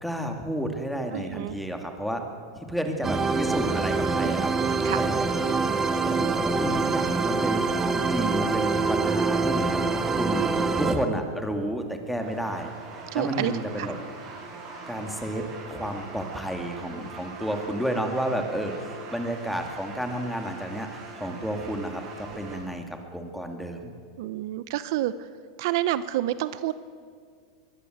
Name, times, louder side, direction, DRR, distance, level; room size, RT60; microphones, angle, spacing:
voice 1, 0.0-2.2 2.5-5.3 6.0-9.8 10.1-12.7 13.1-13.9 14.9-23.9, equal, ahead, 4 dB, 2.4 m, -31 dB
voice 2, 1.1-1.6 4.2-4.3 4.8-5.1 10.4-10.5 13.1-13.5 13.8-13.9 24.2-25.1 25.6-26.7, right 14 dB, 65° right, 14 dB, 0.8 m, -28 dB
sound 1, 3.0-11.0, right 4 dB, 15° right, 1.3 m, -25 dB
sound 2, 12.2-22.6, right 3 dB, 35° right, 7.6 m, -42 dB
23.0 x 20.0 x 8.1 m, 2.1 s
supercardioid pair, 140°, 2 cm